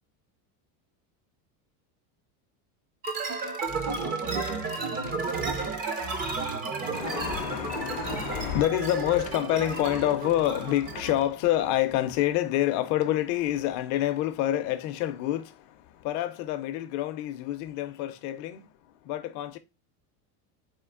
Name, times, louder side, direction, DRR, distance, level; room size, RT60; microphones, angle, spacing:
sound 1, 3.0-11.3, right 4 dB, 20° right, 0.4 m, -32 dB
voice 1, 6.9-19.6, left 13 dB, 40° left, 0.5 m, -28 dB
4.4 x 2.6 x 3.7 m
cardioid pair, 160°, 46 cm